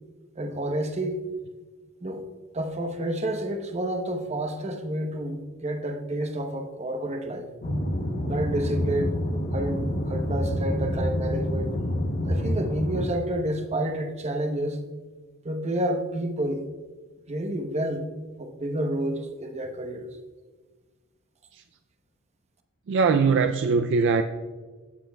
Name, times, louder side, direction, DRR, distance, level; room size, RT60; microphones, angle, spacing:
voice 1, 0.4-1.2 2.0-2.2 2.5-7.5 8.3-9.1 9.5-11.7 12.2-14.8 15.4-16.6 17.3-18.1 18.4-20.1, right 1 dB, 30° right, 0.9 m, -29 dB
sound 1, 7.6-13.1, equal, 45° left, 0.9 m, -27 dB
voice 2, 22.9-24.2, right 5 dB, 60° right, 0.4 m, -21 dB
15.5 x 6.9 x 2.3 m
head